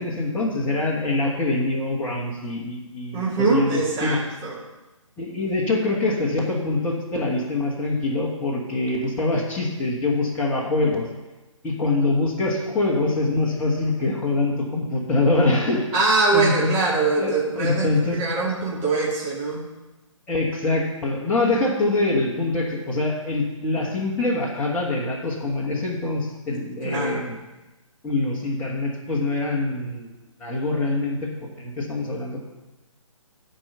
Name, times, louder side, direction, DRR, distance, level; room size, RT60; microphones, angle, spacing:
voice 1, 0.0-4.2 5.2-11.1 11.6-15.9 16.3-16.7 17.1-18.2 20.3-27.4 28.0-30.1 30.4-32.4, left 2 dB, 10° left, -6 dB, 1.4 m, -24 dB
voice 2, 3.1-4.6 15.9-17.9 18.1-19.6 26.8-27.2, right 3 dB, 20° right, -6 dB, 2.3 m, -23 dB
10.5 x 4.7 x 7.9 m, 1.1 s
figure-of-eight pair, 145°, 17 cm